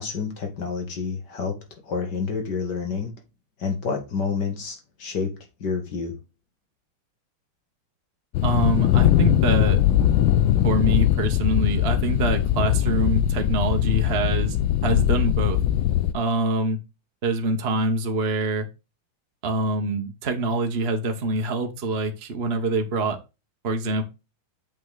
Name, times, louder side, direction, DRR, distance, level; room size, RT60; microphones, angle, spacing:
voice 1, 0.0-1.6 1.8-3.1 3.6-5.3 5.6-6.2, left 5 dB, 50° left, 2.5 m, -28 dB
sound 1, 8.3-16.1, left 12 dB, 75° left, 1.3 m, -21 dB
voice 2, 8.4-9.8 10.6-14.6 14.8-15.6 16.1-16.8 17.2-18.7 19.4-23.2 23.6-24.0, right 2 dB, 35° right, 1.1 m, -25 dB
7.4 x 5.6 x 4.0 m
omnidirectional pair, 2.4 m